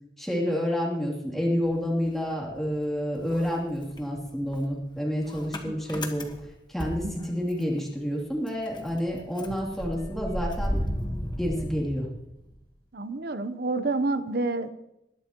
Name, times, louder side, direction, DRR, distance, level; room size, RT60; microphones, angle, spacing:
voice 1, 0.2-6.3 6.7-10.8 11.4-12.1, equal, ahead, -4 dB, 2.9 m, -29 dB
Motor vehicle (road) / Engine starting, 1.6-2.9 3.2-7.8 8.1-8.2 8.5-12.6, equal, 25° left, 1.4 m, -35 dB
voice 2, 12.9-14.7, right 3 dB, 55° right, 10 dB, 0.8 m, -29 dB
21.0 x 11.5 x 3.0 m, 0.87 s
head